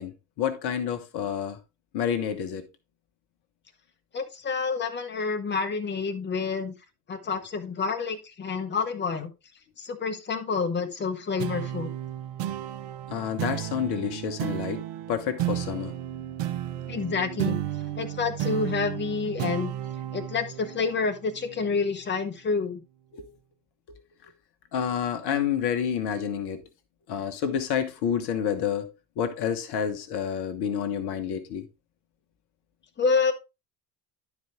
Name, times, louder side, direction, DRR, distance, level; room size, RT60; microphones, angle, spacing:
voice 1, 0.0-1.6 1.9-2.7 13.1-16.0 23.1-23.3 23.9-24.0 24.2-24.3 24.7-26.6 27.1-31.7, left 8 dB, 50° left, 1.3 m, -29 dB
voice 2, 4.1-6.7 7.1-9.3 9.8-11.9 16.9-17.6 18.0-19.7 20.1-22.8 33.0-33.3, left 5 dB, 20° left, 1.3 m, -28 dB
sound 1, 11.4-22.2, right 12 dB, 60° right, 1.1 m, -33 dB
11.5 x 4.8 x 3.5 m
figure-of-eight pair, 60°, 49 cm